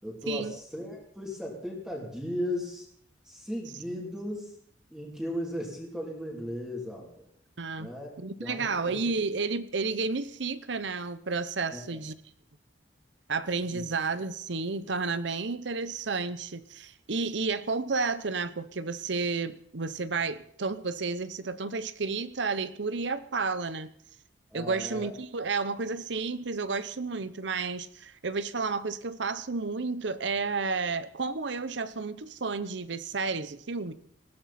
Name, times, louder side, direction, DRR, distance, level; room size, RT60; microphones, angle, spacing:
voice 1, 0.0-2.8 3.2-4.5 4.9-7.2 7.8-8.1 8.4-9.0 11.7-12.0 13.7-13.8 24.5-25.1, left 1 dB, 5° right, -3 dB, 3.2 m, -36 dB
voice 2, 7.6-7.9 8.2-12.1 13.3-23.9 24.5-33.9, right 4 dB, 65° right, 14 dB, 0.9 m, -31 dB
19.5 x 16.0 x 4.3 m, 0.64 s
head